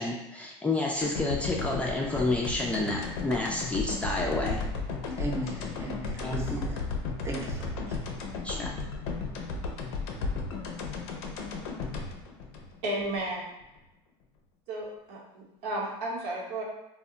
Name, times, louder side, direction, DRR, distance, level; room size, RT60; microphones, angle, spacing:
voice 1, 0.0-4.6 6.2-6.6 8.4-8.7, left 2 dB, 10° left, -2 dB, 0.3 m, -29 dB
sound 1, 1.0-13.2 13.6-13.7, left 4 dB, 75° left, 0.5 m, -34 dB
voice 2, 5.1-6.8 7.2-8.0, right 2 dB, 20° right, -3 dB, 0.7 m, -36 dB
voice 3, 12.8-13.4 14.7-16.6, right 1 dB, 75° right, -4 dB, 0.9 m, -33 dB
2.1 x 2.1 x 3.7 m, 0.91 s
supercardioid pair, 115°, 13 cm